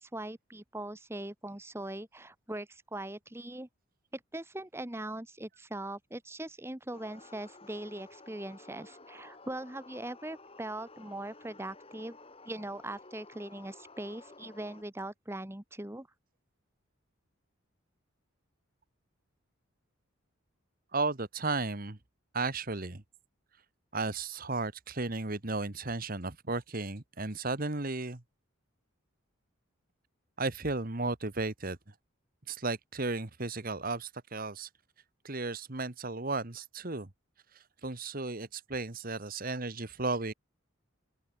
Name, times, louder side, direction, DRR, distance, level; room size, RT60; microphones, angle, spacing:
voice 1, 0.0-3.7 4.3-12.2 12.4-16.1, right 1 dB, 10° right, 1.1 m, -41 dB
sound 1, 6.9-14.8, left 3 dB, 25° left, 6.1 m, -53 dB
voice 2, 20.9-22.0 22.3-23.0 23.9-28.2 30.4-31.8 32.5-34.7 35.2-37.1 37.8-40.3, right 3 dB, 40° right, 1.5 m, -34 dB
open air
head